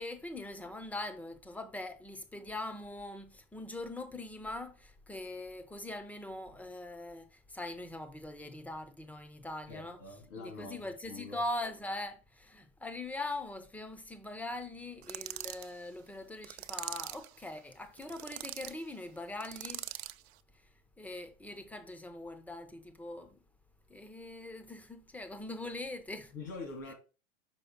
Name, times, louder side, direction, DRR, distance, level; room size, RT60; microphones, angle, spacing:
voice 1, 0.0-10.0 10.4-19.9 21.0-23.4 23.9-26.3, left 2 dB, 5° left, 0.5 m, -42 dB
voice 2, 9.7-10.8 11.1-11.4 26.3-26.9, left 3 dB, 75° left, 2.3 m, -44 dB
sound 1, 15.0-15.7 16.4-17.3 18.0-18.7 19.4-20.2, right 15 dB, 50° right, 0.5 m, -42 dB
5.8 x 5.0 x 3.9 m
figure-of-eight pair, 100°, 41 cm